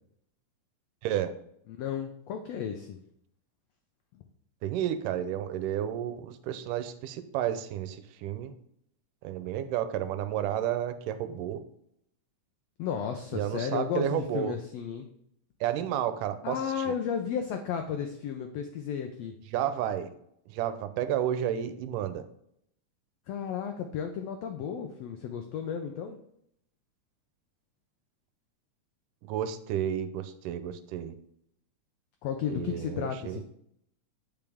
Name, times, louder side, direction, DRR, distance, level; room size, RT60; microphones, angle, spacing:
voice 1, 1.0-1.3 4.6-8.6 9.2-11.6 13.3-14.6 15.6-16.9 19.5-20.1 20.5-22.3 29.2-31.1 32.5-33.4, right 10 dB, 85° right, 11 dB, 2.2 m, -31 dB
voice 2, 1.7-3.0 12.8-15.1 16.4-19.3 23.3-26.2 32.2-33.4, left 7 dB, 85° left, 5 dB, 1.4 m, -33 dB
8.9 x 5.1 x 3.5 m, 0.73 s
omnidirectional pair, 3.7 m